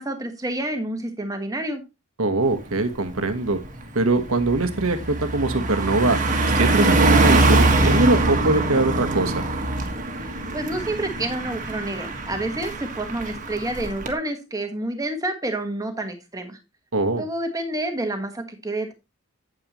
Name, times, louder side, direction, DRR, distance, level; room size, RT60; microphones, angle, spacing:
voice 1, 0.0-1.8 10.3-16.6 17.2-18.9, right 1 dB, 15° right, 6 dB, 1.5 m, -29 dB
voice 2, 2.2-3.6 3.9-6.2 6.5-9.3 16.9-17.2, right 2 dB, 70° right, 9 dB, 1.3 m, -22 dB
Car passing by, 2.5-2.8 3.2-14.1, right 2 dB, 35° right, 1.6 m, -23 dB
9.0 x 9.0 x 3.0 m, 0.25 s
head